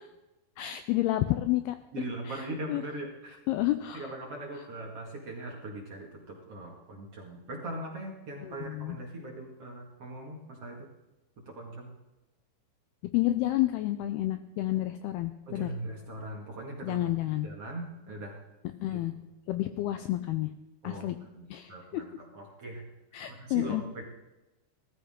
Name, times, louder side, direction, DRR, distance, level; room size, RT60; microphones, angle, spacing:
voice 1, 0.6-1.8 2.3-2.8 3.5-4.1 4.6-4.7 8.4-9.0 13.1-15.7 16.8-17.5 18.8-19.1 19.5-20.5 20.8-21.2 21.5-22.0 23.1-23.8, left 15 dB, 80° left, 9 dB, 2.3 m, -30 dB
voice 2, 1.9-3.4 3.9-10.9 11.5-11.9 15.5-17.1 17.4-18.4 18.9-19.0 20.8-21.1 21.4-22.1 22.3-22.8 23.3-24.0, right 2 dB, 45° right, -1 dB, 2.2 m, -40 dB
17.5 x 13.5 x 3.7 m, 1.0 s
omnidirectional pair, 5.1 m